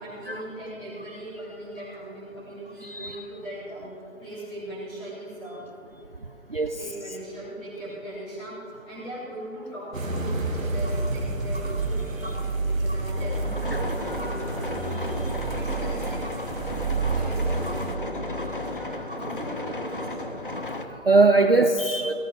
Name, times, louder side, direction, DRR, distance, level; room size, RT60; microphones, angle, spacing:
voice 1, 0.0-3.9 4.2-5.6 6.7-8.6 8.8-15.1 15.5-16.3 17.1-20.4 21.6-21.8, right 1 dB, 5° left, -15 dB, 1.9 m, -39 dB
voice 2, 2.8-3.2 6.5-6.8 12.2-12.3 14.2-14.4 14.7-14.8 17.0-17.2 18.5-18.9 19.2-19.3 20.0-20.1 20.7-22.1, right 3 dB, 45° right, 6 dB, 0.5 m, -23 dB
sound 1, 9.9-17.9, right 3 dB, 75° right, 2.2 m, -29 dB
sound 2, 13.2-20.8, left 2 dB, 40° left, 0.7 m, -34 dB
17.5 x 16.0 x 3.8 m, 2.8 s
hypercardioid pair, 180°, 40 cm